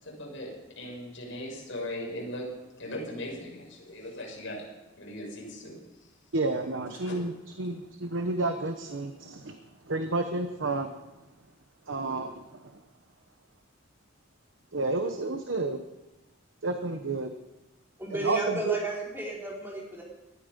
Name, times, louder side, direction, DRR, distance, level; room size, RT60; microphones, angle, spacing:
voice 1, 0.0-2.5 2.8-4.6 5.0-5.7 7.0-7.2, left 1 dB, 65° left, -3 dB, 6.6 m, -38 dB
voice 2, 6.3-9.6 9.9-10.9 11.9-12.4 14.7-15.8 16.6-17.3 18.1-18.8, right 2 dB, 70° right, 7 dB, 1.0 m, -30 dB
voice 3, 18.0-20.0, right 2 dB, 10° right, -4 dB, 4.1 m, -32 dB
19.5 x 13.0 x 5.3 m, 1.0 s
head